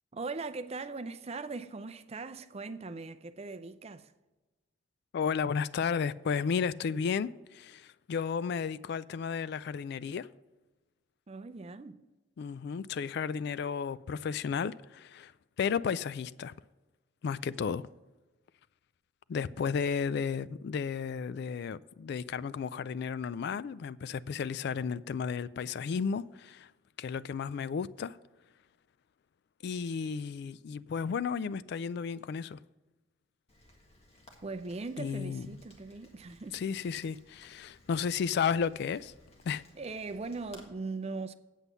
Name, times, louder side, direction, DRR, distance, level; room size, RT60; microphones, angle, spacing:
voice 1, 0.1-4.1 11.3-12.0 34.4-36.6 39.8-41.3, right 3 dB, 35° right, 0.5 m, -40 dB
voice 2, 5.1-10.3 12.4-15.3 15.6-16.5 17.2-17.9 19.3-26.7 27.0-28.2 29.6-32.6 35.0-35.5 36.5-39.1 39.4-39.6, left 6 dB, 60° left, 0.3 m, -33 dB
Rain, 33.5-40.6, left 2 dB, 35° left, 1.6 m, -59 dB
8.3 x 8.0 x 5.5 m
head